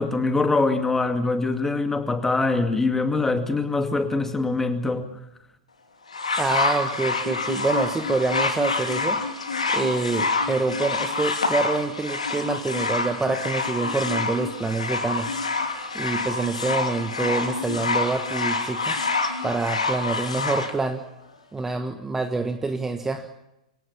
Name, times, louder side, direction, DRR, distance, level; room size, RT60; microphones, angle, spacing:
voice 1, 0.0-5.1, left 3 dB, 10° left, 8 dB, 2.3 m, -23 dB
sound 1, 6.1-20.7 21.6-21.7, left 3 dB, 75° left, 3.1 m, -27 dB
voice 2, 6.4-9.2 9.7-19.0 19.4-21.0 21.5-23.3, right 3 dB, 10° right, 7 dB, 1.5 m, -26 dB
25.0 x 17.5 x 7.2 m, 0.89 s
figure-of-eight pair, 100°, 4 cm